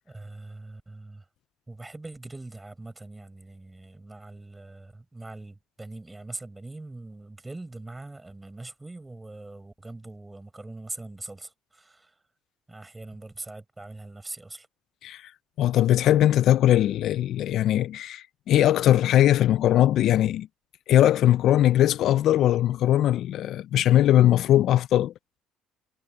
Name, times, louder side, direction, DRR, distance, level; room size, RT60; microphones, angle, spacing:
voice 1, 0.1-1.3 1.7-12.2 12.7-14.7, right 2 dB, 15° right, 6.0 m, -42 dB
voice 2, 15.6-20.5 20.9-25.1, left 12 dB, 60° left, 0.5 m, -20 dB
cardioid pair, 110°, 0 cm